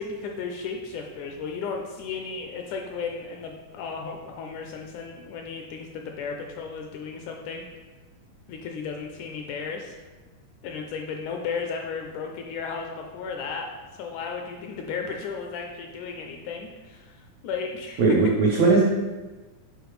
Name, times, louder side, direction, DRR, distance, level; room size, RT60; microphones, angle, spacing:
voice 1, 0.0-7.6 8.5-10.0 10.6-13.7 14.0-18.0, left 5 dB, 80° left, 2 dB, 1.8 m, -34 dB
voice 2, 18.0-18.8, right 3 dB, 90° right, -3 dB, 1.4 m, -19 dB
6.9 x 4.5 x 3.1 m, 1.3 s
omnidirectional pair, 3.8 m